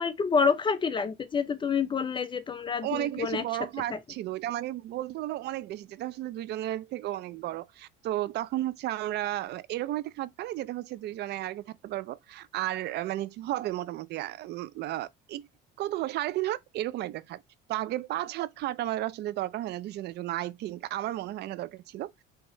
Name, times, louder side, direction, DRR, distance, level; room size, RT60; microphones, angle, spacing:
voice 1, 0.0-3.4 3.9-4.0, left 5 dB, 25° left, 0.5 m, -28 dB
voice 2, 2.8-15.5 15.8-17.4 17.7-22.1, right 14 dB, 60° right, 0.4 m, -33 dB
5.6 x 2.9 x 3.0 m
cardioid pair, 120°, 20 cm